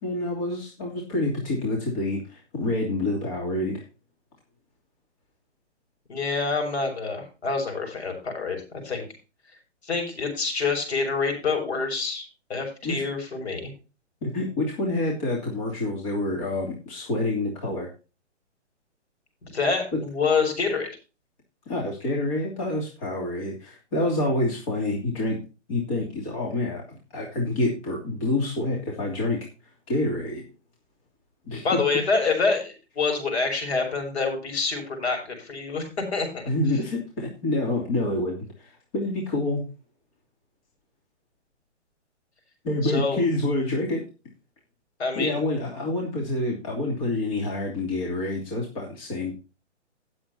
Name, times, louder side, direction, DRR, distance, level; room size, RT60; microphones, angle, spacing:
voice 1, 0.0-3.8 12.8-13.1 14.2-17.9 19.9-20.0 21.7-25.4 25.7-29.4 29.9-30.4 31.5-31.8 36.5-39.6 42.6-44.1 45.1-49.3, left 2 dB, 30° left, -2 dB, 3.0 m, -27 dB
voice 2, 6.1-9.0 9.8-13.7 19.4-20.9 31.6-35.8 36.1-36.4 42.8-43.2 45.0-45.4, left 4 dB, 60° left, 3 dB, 6.6 m, -27 dB
18.5 x 7.9 x 2.8 m, 0.32 s
hypercardioid pair, 160°, 36 cm